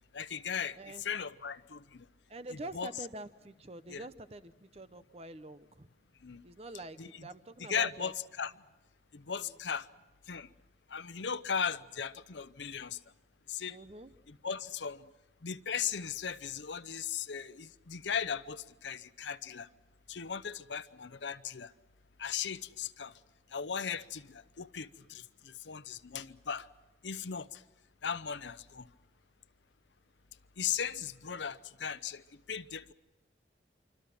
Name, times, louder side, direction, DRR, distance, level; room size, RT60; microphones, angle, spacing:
voice 1, 0.1-2.0 2.5-3.1 3.9-4.1 6.2-6.4 7.0-7.3 7.6-8.5 9.1-9.9 10.3-10.5 10.9-13.0 13.5-13.8 14.3-15.0 15.4-19.7 20.1-21.7 22.2-23.1 23.5-26.7 27.0-27.6 28.0-28.9 30.6-32.2 32.5-32.9, left 7 dB, 80° left, 0.8 m, -37 dB
voice 2, 2.3-5.9 6.4-8.1 9.3-9.5 13.7-14.1, right 2 dB, 35° right, 0.8 m, -46 dB
26.0 x 25.0 x 6.0 m
head